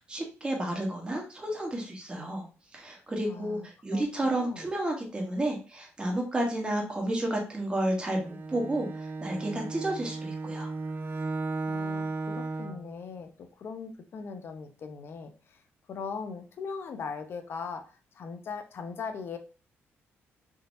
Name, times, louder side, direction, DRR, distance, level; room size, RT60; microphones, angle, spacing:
voice 1, 0.1-2.5 2.7-10.7, right 1 dB, 20° right, 0 dB, 1.0 m, -31 dB
voice 2, 3.3-4.7 11.7-15.6 15.9-19.4, left 5 dB, 55° left, 7 dB, 0.6 m, -40 dB
Bowed string instrument, 8.1-12.9, right 3 dB, 45° right, 0.4 m, -35 dB
3.6 x 2.8 x 2.5 m, 0.35 s
cardioid pair, 105°, 5 cm